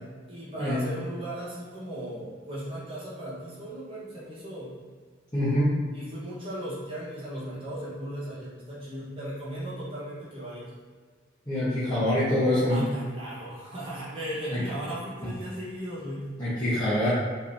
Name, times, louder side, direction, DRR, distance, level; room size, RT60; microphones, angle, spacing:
voice 1, 0.3-4.7 5.9-10.7 12.7-16.3, right 1 dB, 30° right, -8 dB, 1.3 m, -37 dB
voice 2, 5.3-5.7 11.5-12.8 14.5-14.6 16.4-17.1, left 1 dB, 20° left, -13 dB, 1.1 m, -25 dB
4.9 x 3.3 x 2.8 m, 1.6 s
head